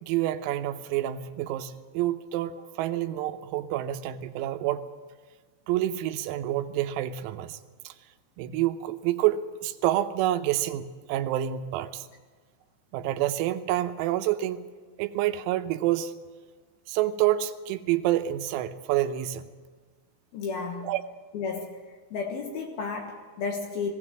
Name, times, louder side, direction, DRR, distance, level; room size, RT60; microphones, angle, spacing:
voice 1, 0.0-4.8 5.7-7.6 7.9-8.0 8.4-12.0 12.9-14.7 15.0-16.1 16.9-19.5 20.8-21.0, right 13 dB, 90° right, 8 dB, 3.7 m, -28 dB
voice 2, 20.3-20.9 21.3-21.8 22.1-23.9, left 5 dB, 65° left, 3 dB, 2.6 m, -32 dB
19.5 x 18.0 x 7.4 m, 1.5 s
omnidirectional pair, 6.0 m